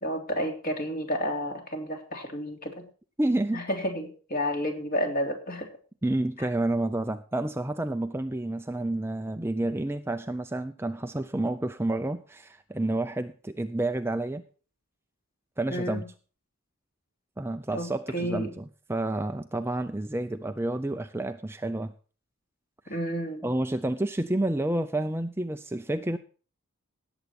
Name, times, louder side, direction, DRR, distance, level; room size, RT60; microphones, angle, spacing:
voice 1, 0.0-2.9 3.5-5.7 6.4-6.5 15.7-16.0 17.7-18.5 22.9-23.4, equal, 40° left, 3 dB, 3.4 m, -31 dB
voice 2, 3.2-3.6 6.0-14.4 15.6-16.0 17.4-21.9 22.9-23.0 23.4-26.2, right 1 dB, 10° right, 8 dB, 0.5 m, -29 dB
18.0 x 8.1 x 4.3 m, 0.39 s
head